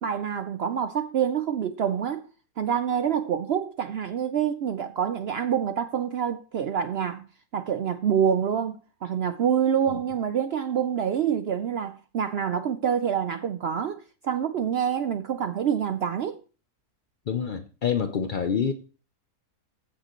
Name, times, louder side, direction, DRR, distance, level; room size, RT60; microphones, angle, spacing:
voice 1, 0.0-2.3 2.6-7.3 7.5-16.4, right 8 dB, 80° right, 0.5 m, -26 dB
voice 2, 17.3-18.7, left 7 dB, 80° left, 0.4 m, -27 dB
15.0 x 6.6 x 3.0 m
omnidirectional pair, 1.7 m